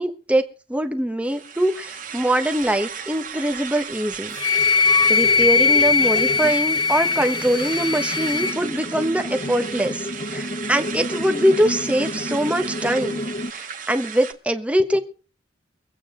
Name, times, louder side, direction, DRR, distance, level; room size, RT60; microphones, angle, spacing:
voice 1, 0.0-4.4 5.1-13.2 13.5-15.0, right 1 dB, 10° right, 6 dB, 1.2 m, -23 dB
sound 1, 1.2-14.3, right 7 dB, 50° right, 1.8 m, -35 dB
sound 2, 3.9-13.5, left 1 dB, 40° left, 1.2 m, -32 dB
Wind instrument woodwind instrument, 4.4-8.5, left 5 dB, 25° left, 0.8 m, -20 dB
24.0 x 8.8 x 3.8 m, 0.37 s
head